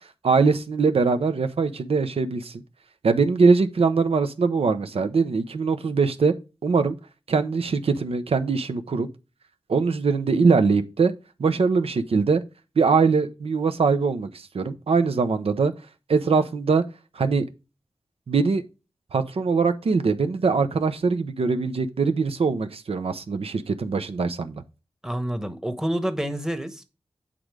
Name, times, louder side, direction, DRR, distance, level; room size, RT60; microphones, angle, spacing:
voice 1, 0.2-2.6 3.0-6.3 6.6-6.9 7.3-9.1 9.7-11.1 11.4-12.4 12.8-14.3 14.5-15.7 16.1-16.8 17.1-17.4 18.3-18.6 19.1-24.6, right 4 dB, 85° right, 0.8 m, -22 dB
voice 2, 25.0-27.0, right 1 dB, 5° right, 1.0 m, -28 dB
8.6 x 3.8 x 4.7 m
wide cardioid pair, 65°, 10 cm